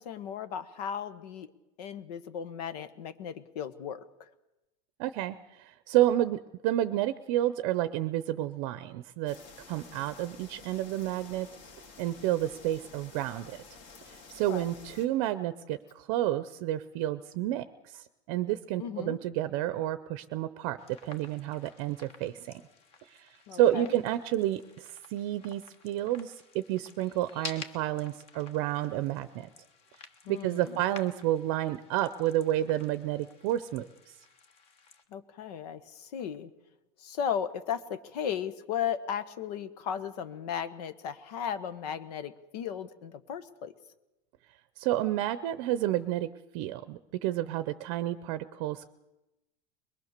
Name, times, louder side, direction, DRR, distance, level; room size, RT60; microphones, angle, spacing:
voice 1, 0.0-1.5 1.8-4.0 14.5-14.7 18.8-19.2 23.5-23.9 30.2-30.8 35.1-36.5 37.0-43.7, left 8 dB, 80° left, 11 dB, 1.4 m, -36 dB
voice 2, 5.0-9.4 9.7-11.5 12.0-13.6 14.1-17.7 17.9-20.8 21.0-22.6 23.0-29.5 30.3-34.1 44.8-46.3 46.5-48.9, right 13 dB, 45° right, 13 dB, 0.7 m, -30 dB
sound 1, 9.3-15.1, left 4 dB, 45° left, 2.4 m, -51 dB
sound 2, 20.8-35.0, left 5 dB, 30° left, 1.2 m, -51 dB
22.0 x 21.5 x 6.7 m, 0.97 s
supercardioid pair, 180°, 20 cm